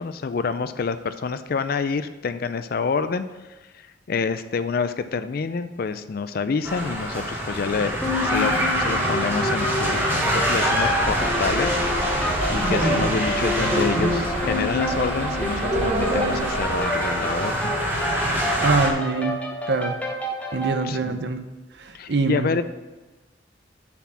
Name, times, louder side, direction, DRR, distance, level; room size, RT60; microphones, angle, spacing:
voice 1, 0.0-3.2 4.1-8.0 8.2-17.8 20.8-21.2 21.9-22.6, left 5 dB, 55° left, 11 dB, 0.4 m, -27 dB
sound 1, 6.6-18.9, equal, 10° right, 1.5 m, -26 dB
sound 2, 8.0-20.8, left 1 dB, 10° left, 1.0 m, -29 dB
sound 3, 11.0-16.8, right 2 dB, 40° right, 1.0 m, -28 dB
voice 2, 18.6-19.4 19.7-20.0 20.5-21.4 22.1-22.6, right 4 dB, 60° right, 8 dB, 0.7 m, -23 dB
7.0 x 4.9 x 7.0 m, 1.1 s
head